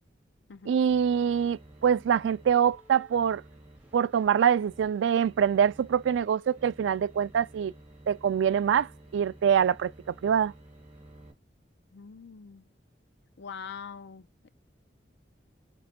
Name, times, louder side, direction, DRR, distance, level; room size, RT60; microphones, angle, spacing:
voice 1, 0.7-3.4 3.9-7.7 8.1-10.5, right 8 dB, 85° right, 0.3 m, -25 dB
sound 1, 0.9-11.3, right 1 dB, 5° right, 1.9 m, -53 dB
voice 2, 11.9-12.6 13.4-14.5, left 6 dB, 70° left, 0.5 m, -43 dB
5.1 x 3.2 x 2.7 m
head